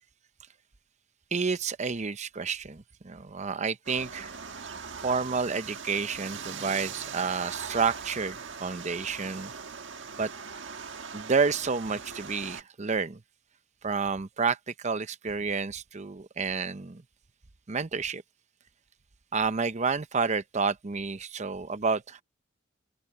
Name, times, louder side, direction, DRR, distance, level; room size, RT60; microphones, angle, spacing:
voice 1, 1.3-4.3 5.0-9.5 10.2-10.3 11.1-13.2 13.8-17.0 17.7-18.2 19.3-22.2, right 5 dB, 40° right, 0.7 m, -30 dB
sound 1, 3.9-12.6, right 6 dB, 70° right, 1.6 m, -40 dB
open air
head